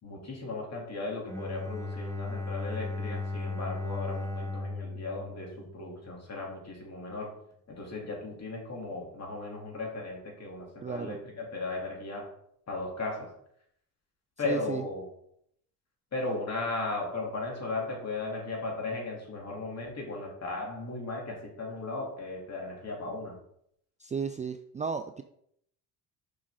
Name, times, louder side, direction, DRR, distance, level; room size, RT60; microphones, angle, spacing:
voice 1, 0.0-7.3 7.7-12.3 12.7-13.3 14.4-15.1 16.1-23.4, left 3 dB, 40° left, -1 dB, 2.9 m, -36 dB
Bowed string instrument, 1.3-6.2, left 2 dB, 10° left, 0.8 m, -36 dB
voice 2, 10.8-11.2 14.4-14.8 24.0-25.2, right 5 dB, 20° right, 9 dB, 0.3 m, -34 dB
6.3 x 6.1 x 3.7 m, 0.71 s
supercardioid pair, 85°, 39 cm